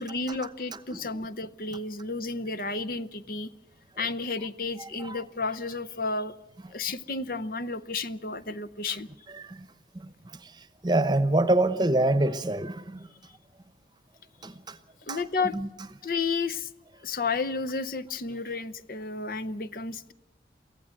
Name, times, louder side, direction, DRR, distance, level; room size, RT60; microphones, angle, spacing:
voice 1, 0.0-3.5 4.0-6.3 6.7-9.1 15.1-15.6 16.0-16.7 17.0-20.1, left 3 dB, 50° left, 0.7 m, -32 dB
voice 2, 4.8-5.2 8.9-9.0 9.4-9.7 9.9-10.1 10.4-10.5 10.8-13.1 14.4-14.8 15.1-15.2 15.5-15.7, right 2 dB, 25° right, 0.9 m, -26 dB
23.5 x 15.5 x 7.7 m
head